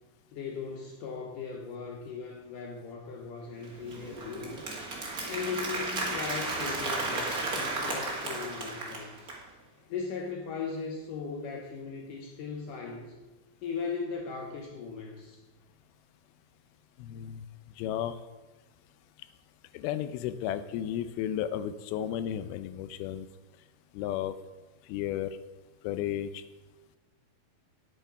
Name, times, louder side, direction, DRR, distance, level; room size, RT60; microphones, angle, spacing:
voice 1, 0.3-4.6 5.3-9.3 9.9-13.1 13.6-15.4, left 5 dB, 70° left, 1 dB, 2.4 m, -38 dB
Applause, 3.6-9.4, right 2 dB, 35° right, 1.7 m, -34 dB
voice 2, 17.0-17.4 17.8-18.2 19.7-23.3 23.9-24.3 24.9-25.3 25.8-26.4, left 11 dB, 85° left, 12 dB, 2.5 m, -33 dB
9.9 x 8.8 x 5.3 m, 1.2 s
omnidirectional pair, 4.3 m